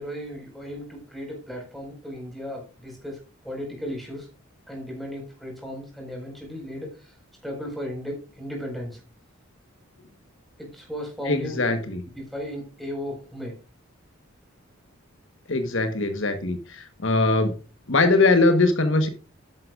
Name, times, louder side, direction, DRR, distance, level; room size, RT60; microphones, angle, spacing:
voice 1, 0.0-4.3 4.7-7.1 7.4-9.0 10.6-11.6 12.3-13.5, equal, ahead, 0 dB, 4.9 m, -35 dB
voice 2, 11.2-12.0 15.5-17.5 17.9-19.1, left 2 dB, 60° left, 7 dB, 1.2 m, -21 dB
12.5 x 10.5 x 2.5 m, 0.35 s
head